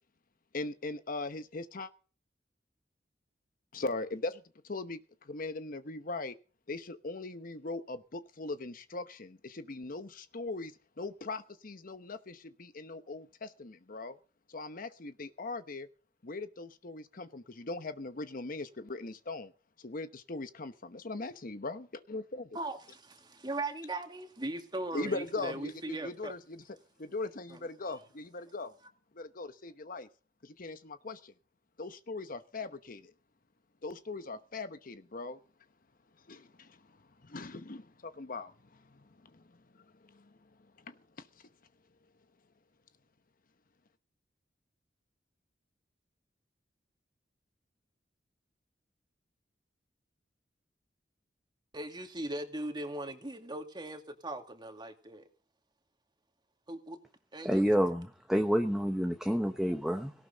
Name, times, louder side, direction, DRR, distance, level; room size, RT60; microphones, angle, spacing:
voice 1, 0.5-1.9 3.7-6.4 6.7-14.2 14.5-15.9 16.2-19.5 19.8-22.5 24.9-26.6 27.0-28.7 29.1-30.1 30.4-31.3 31.8-33.1 33.8-35.4 36.3-37.0 37.2-39.6 40.1-40.3 40.9-41.3, left 3 dB, 50° left, 1.0 m, -40 dB
voice 2, 22.5-26.3 27.5-27.6 51.7-55.2 56.7-57.0 57.3-57.7, right 2 dB, 25° right, 2.3 m, -39 dB
voice 3, 57.4-60.1, equal, 5° right, 1.0 m, -28 dB
18.0 x 17.5 x 4.0 m
head